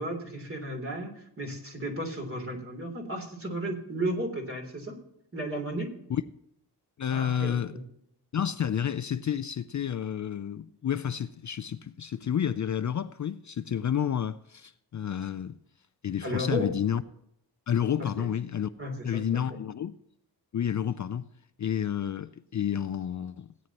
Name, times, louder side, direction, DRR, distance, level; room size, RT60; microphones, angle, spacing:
voice 1, 0.0-5.0 5.3-5.9 7.1-7.8 16.2-16.7 18.0-18.3 18.8-19.6, right 1 dB, 30° right, 3.3 m, -34 dB
voice 2, 7.0-7.7 8.3-15.6 16.0-17.0 17.7-18.7 19.0-20.0 20.5-21.2 21.6-23.5, left 9 dB, 45° left, 0.5 m, -30 dB
17.0 x 9.3 x 3.0 m
wide cardioid pair, 95°, 41 cm